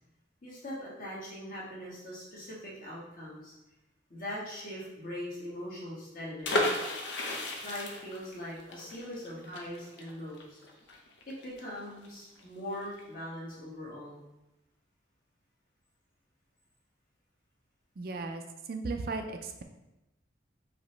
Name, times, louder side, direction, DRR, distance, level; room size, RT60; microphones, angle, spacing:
voice 1, 0.4-3.5 4.1-6.6 7.6-10.6 11.3-14.2, equal, 45° left, -6 dB, 1.4 m, -41 dB
sound 1, 6.4-12.1 12.4-12.5 12.7-13.0, left 1 dB, 65° left, 0.7 m, -34 dB
voice 2, 18.0-18.4 18.7-19.6, right 3 dB, 50° right, 6 dB, 0.4 m, -36 dB
5.0 x 2.9 x 3.2 m, 0.96 s
head